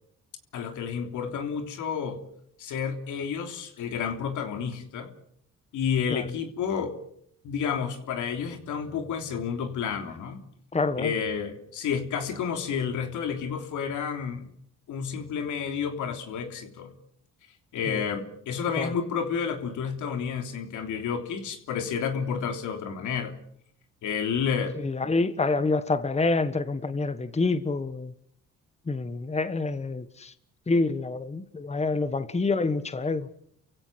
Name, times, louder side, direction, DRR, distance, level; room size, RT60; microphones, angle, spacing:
voice 1, 0.5-2.2 2.6-5.1 5.7-7.0 7.4-10.4 11.0-14.5 14.9-16.9 17.7-23.4 24.0-24.8 25.0-25.1, left 7 dB, 80° left, 3.3 m, -30 dB
voice 2, 10.7-11.1 17.9-18.0 18.8-18.9 24.8-28.1 28.9-30.3 30.7-33.3, left 3 dB, 20° left, 1.3 m, -27 dB
30.0 x 16.0 x 7.9 m
cardioid pair, 90°, 30 cm